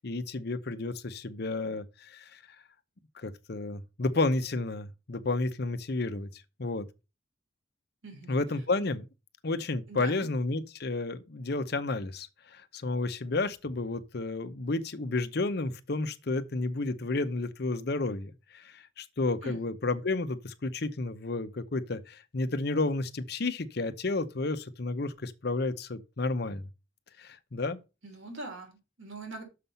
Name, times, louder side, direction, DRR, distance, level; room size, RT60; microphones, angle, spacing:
voice 1, 0.0-2.4 3.2-6.9 8.3-9.0 9.4-26.7 27.2-27.8, left 3 dB, 55° left, 0.8 m, -31 dB
voice 2, 9.9-10.3 19.4-19.6 28.0-29.4, right 2 dB, 85° right, 3.1 m, -42 dB
6.6 x 5.5 x 5.5 m
head